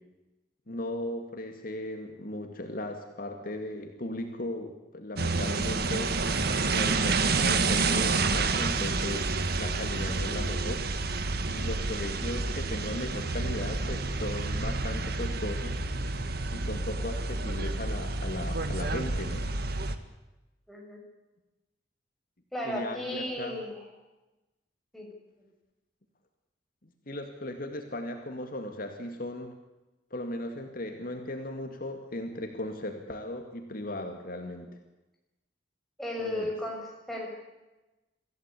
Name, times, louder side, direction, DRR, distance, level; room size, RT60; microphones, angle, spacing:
voice 1, 0.7-6.1 6.7-10.8 11.5-15.8 16.5-19.4 22.6-23.6 26.8-29.5 30.1-34.7 36.2-36.5, left 1 dB, 55° left, 4 dB, 2.3 m, -37 dB
sound 1, 5.2-19.9, right 3 dB, 60° right, 1.7 m, -29 dB
voice 2, 20.7-21.0 22.5-23.9 24.9-25.1 36.0-37.3, left 1 dB, ahead, -2 dB, 6.9 m, -35 dB
25.5 x 15.5 x 8.4 m, 1.0 s
head